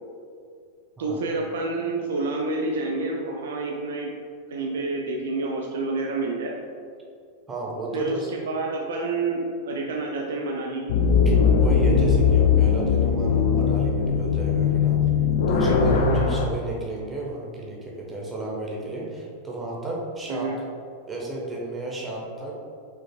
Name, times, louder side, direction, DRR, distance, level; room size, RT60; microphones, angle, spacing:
voice 1, 1.0-4.1 4.5-6.5 7.9-10.9 16.0-16.4 20.3-20.6, right 3 dB, 60° right, 0 dB, 0.4 m, -28 dB
voice 2, 7.5-8.3 11.2-15.0 15.4-20.5 21.1-22.6, right 2 dB, 15° right, -3 dB, 1.1 m, -33 dB
sound 1, 10.9-16.5, left 6 dB, 55° left, 0.4 m, -20 dB
4.9 x 4.5 x 2.3 m, 2.3 s
figure-of-eight pair, 90°, 0 cm